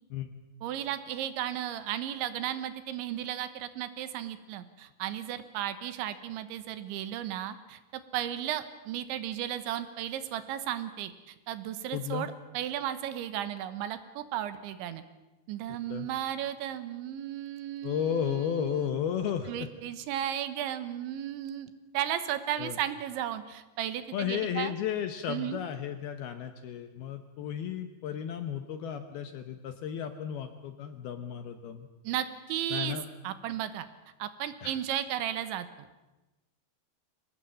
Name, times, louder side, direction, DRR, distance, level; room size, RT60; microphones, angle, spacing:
voice 1, 0.6-15.0 15.5-19.0 19.5-24.8 25.3-25.6 32.1-33.0 33.2-33.9 34.2-35.9, right 11 dB, 80° right, 12 dB, 3.4 m, -35 dB
voice 2, 11.9-12.3 15.7-16.1 17.8-19.7 22.6-22.8 24.1-31.9 32.7-33.0 34.6-34.7, left 9 dB, 70° left, 8 dB, 2.4 m, -34 dB
24.5 x 18.5 x 8.9 m, 1.0 s
omnidirectional pair, 5.6 m